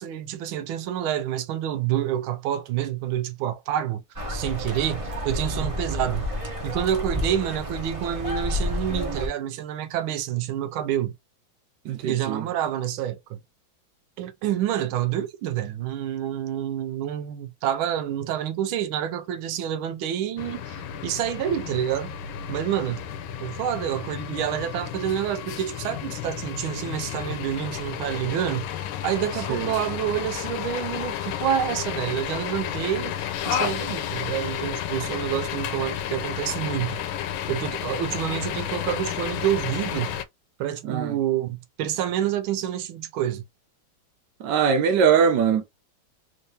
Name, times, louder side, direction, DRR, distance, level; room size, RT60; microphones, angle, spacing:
voice 1, 0.0-4.0 4.3-6.2 6.6-11.1 12.0-13.4 14.2-22.1 22.5-23.0 23.4-28.7 29.0-37.0 37.5-40.2 40.6-43.4, right 11 dB, 90° right, 1.4 m, -28 dB
sound 1, 4.2-9.3, left 1 dB, 25° right, 0.7 m, -30 dB
voice 2, 11.8-12.5 29.5-29.7 40.8-41.1 44.4-45.6, right 7 dB, 65° right, 1.3 m, -22 dB
sound 2, 20.4-40.2, left 10 dB, 90° left, 1.4 m, -32 dB
3.6 x 2.7 x 3.2 m
omnidirectional pair, 2.2 m